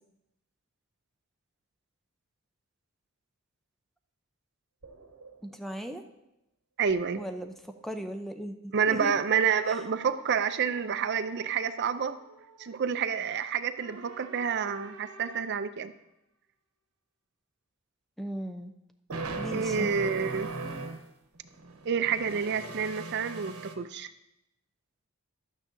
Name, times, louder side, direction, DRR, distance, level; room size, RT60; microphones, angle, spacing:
sound 1, 4.8-5.4 5.7-5.9 6.9-7.8 9.6-12.8 13.8-15.6 19.1-21.1 21.3-23.7, right 3 dB, 90° right, 1.0 m, -41 dB
voice 1, 5.4-6.0 7.2-7.5 7.8-9.1 18.2-18.7 19.3-19.9, equal, ahead, 6 dB, 0.5 m, -37 dB
voice 2, 6.8-7.2 8.7-12.2 12.6-15.9 19.5-20.5 21.8-24.1, right 6 dB, 50° right, 12 dB, 0.4 m, -29 dB
12.0 x 8.9 x 2.6 m, 0.87 s
head